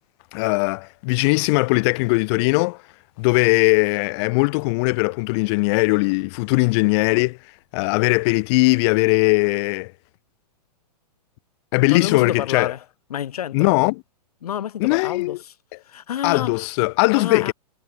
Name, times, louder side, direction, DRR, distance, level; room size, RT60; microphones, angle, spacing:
voice 1, 0.3-2.8 3.2-7.4 7.7-9.9 11.7-12.7 13.5-14.0 14.8-15.4 16.2-17.5, left 28 dB, 40° left, 3.3 m, -19 dB
voice 2, 11.9-12.8 13.1-13.8 14.4-15.5 15.9-16.6 17.1-17.5, left 10 dB, 65° left, 7.1 m, -29 dB
hypercardioid pair, 120°, 21 cm